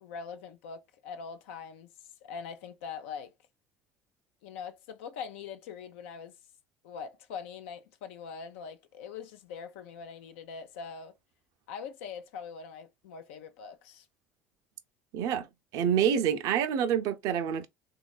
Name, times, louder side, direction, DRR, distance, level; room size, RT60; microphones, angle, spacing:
voice 1, 0.0-1.9 2.2-3.3 4.4-6.3 6.8-11.1 11.7-14.0, left 6 dB, 75° left, 0.5 m, -42 dB
voice 2, 15.1-15.5 15.7-17.7, right 8 dB, 60° right, 0.5 m, -27 dB
3.3 x 2.3 x 2.3 m
hypercardioid pair, 65°, 7 cm